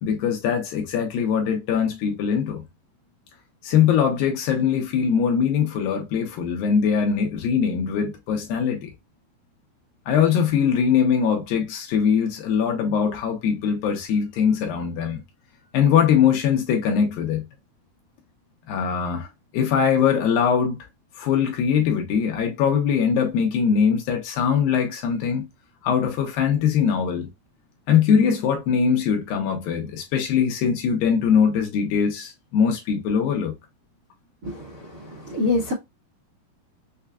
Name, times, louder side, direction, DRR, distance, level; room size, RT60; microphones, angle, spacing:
voice 1, 0.0-2.6 3.6-8.9 10.1-15.2 15.7-17.4 18.7-20.8 21.2-25.5 25.8-27.3 27.9-33.5, left 7 dB, 75° left, 2.3 m, -21 dB
voice 2, 34.4-35.7, left 2 dB, 70° right, 0.9 m, -26 dB
6.6 x 2.2 x 2.3 m
omnidirectional pair, 4.6 m